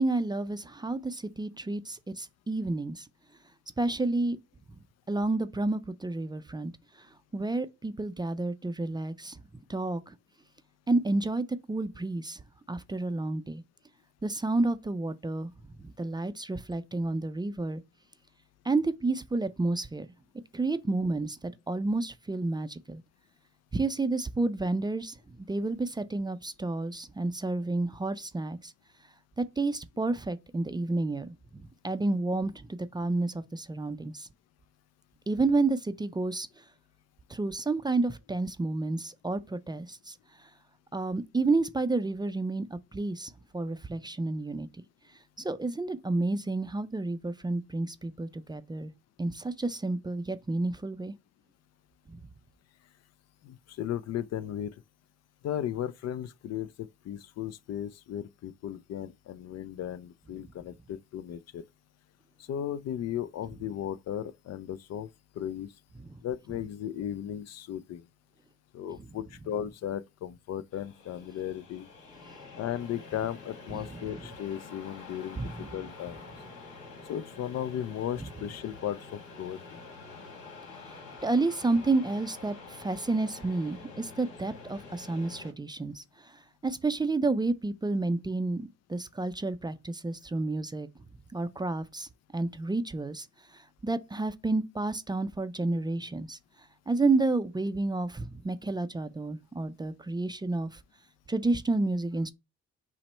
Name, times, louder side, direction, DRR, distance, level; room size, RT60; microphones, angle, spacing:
voice 1, 0.0-3.1 3.8-4.4 5.1-6.7 7.0-7.1 7.3-9.4 9.7-10.1 10.9-12.4 12.7-13.6 14.2-15.5 15.8-17.8 18.6-20.1 20.5-23.0 23.7-28.7 29.4-34.3 35.3-36.6 37.3-40.5 40.9-44.7 45.4-48.9 49.2-51.1 52.1-52.2 66.0-66.1 73.7-74.0 75.3-75.8 78.2-78.3 80.8-90.9 91.3-93.3 93.5-96.4 96.9-100.8 101.3-102.3, right 2 dB, 15° right, 0.4 m, -30 dB
voice 2, 53.4-54.8 55.4-61.6 62.5-65.1 65.4-65.7 66.2-68.1 68.7-71.9 72.6-76.2 77.1-79.6, left 10 dB, 60° left, 0.4 m, -36 dB
sound 1, 70.7-85.5, left 3 dB, 75° left, 1.6 m, -47 dB
5.8 x 2.1 x 4.3 m
cardioid pair, 90°, 30 cm